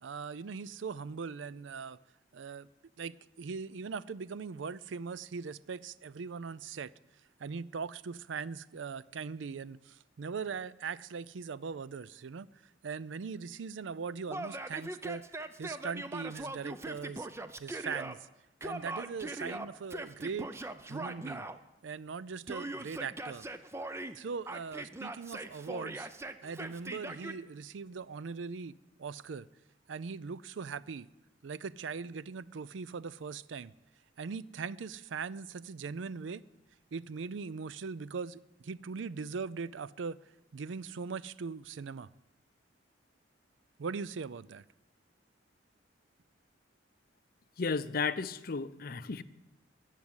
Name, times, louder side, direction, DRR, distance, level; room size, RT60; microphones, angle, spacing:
voice 1, 0.0-2.0 2.3-2.7 3.0-6.9 7.4-12.5 12.8-15.2 15.6-17.3 17.6-18.2 18.6-20.5 20.9-21.5 21.8-23.5 24.1-29.5 29.9-31.1 31.4-33.7 34.2-36.4 36.9-40.2 40.5-42.1 43.8-44.6, right 5 dB, 80° right, 0.5 m, -40 dB
Yell, 14.3-18.1 18.6-21.6 22.5-24.2 24.5-27.4, right 2 dB, 15° right, 0.6 m, -40 dB
voice 2, 47.6-49.2, left 4 dB, 50° left, 0.6 m, -33 dB
14.5 x 7.5 x 9.6 m
head